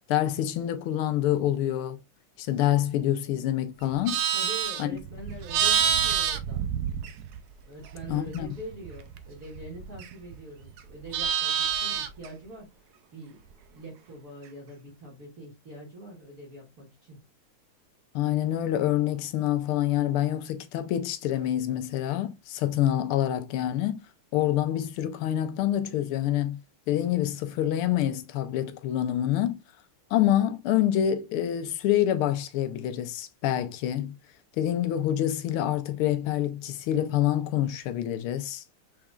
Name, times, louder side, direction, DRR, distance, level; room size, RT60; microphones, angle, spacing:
voice 1, 0.0-2.0 2.4-4.2 4.8-4.9 8.1-8.5 18.1-24.0 24.3-26.6 26.9-29.6 30.1-34.1 34.6-38.6, left 12 dB, 90° left, 1.6 m, -26 dB
Livestock farm animals working animals, 3.8-7.5 7.8-10.4 10.7-12.3, right 8 dB, 75° right, 0.9 m, -28 dB
voice 2, 4.3-6.7 7.6-13.4 13.7-17.2, right 1 dB, 45° right, 1.8 m, -44 dB
6.0 x 3.7 x 2.4 m
omnidirectional pair, 2.3 m